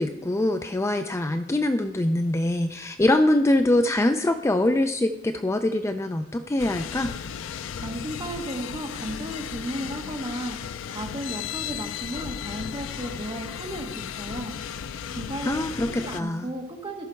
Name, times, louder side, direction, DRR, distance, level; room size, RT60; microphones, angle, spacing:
voice 1, 0.0-7.1 15.5-16.5, left 1 dB, 15° left, 7 dB, 0.4 m, -23 dB
sound 1, 6.6-16.2, left 8 dB, 80° left, 0.4 m, -35 dB
voice 2, 7.7-10.6 10.9-14.5 15.1-17.1, right 1 dB, 25° right, 2 dB, 1.4 m, -34 dB
14.0 x 6.1 x 4.5 m, 0.85 s
head